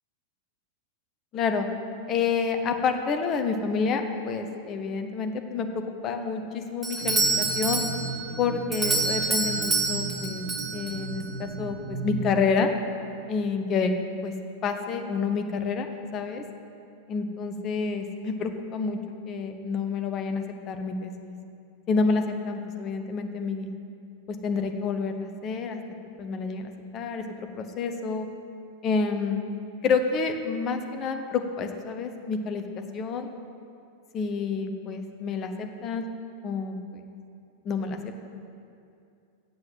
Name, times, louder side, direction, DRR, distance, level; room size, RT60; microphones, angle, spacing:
voice 1, 1.3-1.7 2.1-7.8 8.4-10.4 10.7-12.7 13.3-13.9 14.2-14.3 14.6-16.4 17.1-19.0 19.3-21.4 21.9-23.7 24.4-25.8 26.2-28.3 28.8-29.5 29.8-32.6 32.9-33.3 34.1-36.0 36.4-37.0 37.6-38.3, left 5 dB, 30° left, 6 dB, 0.8 m, -28 dB
Doorbell, 6.8-11.3, right 3 dB, 15° right, 1.3 m, -27 dB
sound 1, 7.0-12.4, right 5 dB, 50° right, 2.9 m, -36 dB
7.8 x 7.6 x 7.6 m, 2.5 s
figure-of-eight pair, 90°, 0 cm